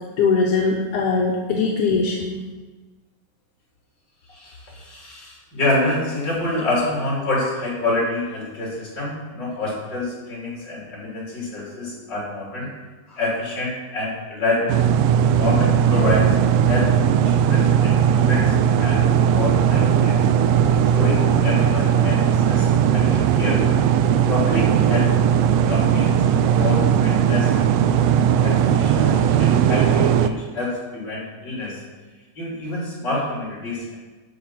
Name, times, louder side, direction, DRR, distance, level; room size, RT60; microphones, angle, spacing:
voice 1, 0.2-2.4, left 4 dB, 75° left, -1 dB, 2.4 m, -21 dB
voice 2, 4.3-12.7 13.1-14.8 15.2-16.4 16.6-19.0 19.3-20.2 20.7-23.6 24.3-25.1 25.7-26.2 26.4-27.5 27.9-28.0 28.4-31.8 32.4-34.0, left 2 dB, 35° left, -5 dB, 4.1 m, -27 dB
sound 1, 14.7-30.3, right 8 dB, 85° right, 1.5 m, -18 dB
12.5 x 6.0 x 5.8 m, 1.3 s
omnidirectional pair, 3.5 m